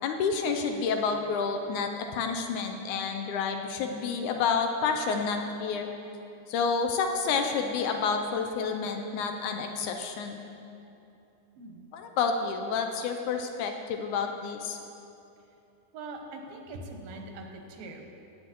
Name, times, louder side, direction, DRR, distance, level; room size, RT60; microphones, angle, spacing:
voice 1, 0.0-5.9 6.5-10.4 11.9-14.8, left 5 dB, 80° left, 4 dB, 1.8 m, -29 dB
voice 2, 15.9-17.5 17.8-18.0, right 2 dB, 85° right, 2 dB, 2.8 m, -42 dB
17.5 x 8.5 x 3.0 m, 2.8 s
omnidirectional pair, 3.9 m